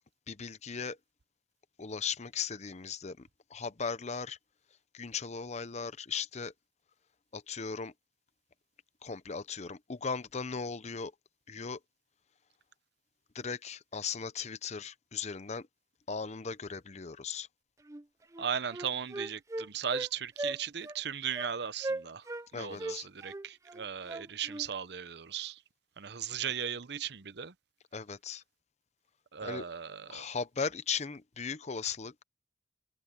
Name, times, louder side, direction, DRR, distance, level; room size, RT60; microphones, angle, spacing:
voice 1, 0.3-1.0 1.8-4.4 4.9-6.5 7.3-7.9 9.0-11.1 11.5-11.8 13.3-15.7 16.1-17.5 22.5-23.1 27.9-28.4 29.4-29.6 30.1-32.2, left 5 dB, 40° left, 0.7 m, -37 dB
Wind instrument woodwind instrument, 17.9-18.0 18.3-20.1 20.4-20.6 20.8-21.0 21.3-21.5 21.8-22.5 22.8-24.7, right 2 dB, 15° right, 0.5 m, -38 dB
voice 2, 18.4-22.3 22.5-25.6 26.0-27.5 29.3-30.3, right 8 dB, 65° right, 0.8 m, -37 dB
head